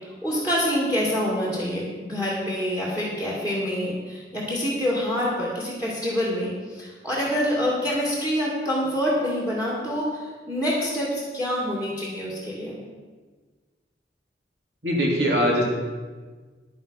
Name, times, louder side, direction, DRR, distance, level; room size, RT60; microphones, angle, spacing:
voice 1, 0.2-12.8, equal, 10° right, -4 dB, 2.3 m, -26 dB
voice 2, 14.8-15.6, equal, 70° right, -2 dB, 3.3 m, -21 dB
10.5 x 10.0 x 5.6 m, 1.4 s
head